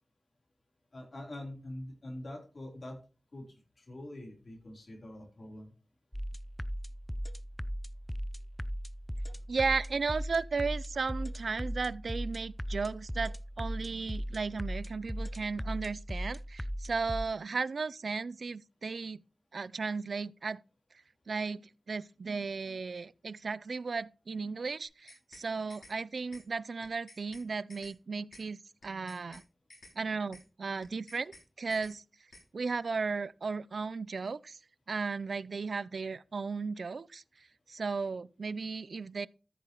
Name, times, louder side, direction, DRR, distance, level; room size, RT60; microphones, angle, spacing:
voice 1, 0.9-3.0 3.3-3.5 3.8-5.7, left 1 dB, 60° left, 3.5 m, -44 dB
sound 1, 6.1-17.2, equal, 5° left, 0.4 m, -38 dB
voice 2, 9.5-19.2 19.5-20.6 21.3-21.6 21.9-29.4 30.0-32.0 32.5-34.6 34.9-37.2 37.7-39.3, right 4 dB, 80° right, 0.4 m, -35 dB
sound 2, 24.8-25.4 25.7-25.9 26.3-26.4 26.8-27.4 27.7-27.9 28.3-28.4 28.8-29.4 29.7-29.9 30.3-30.4 30.8-31.4 31.7-31.9 32.3-32.4, left 2 dB, 75° left, 5.6 m, -54 dB
14.0 x 7.5 x 3.0 m
wide cardioid pair, 65°, 0 cm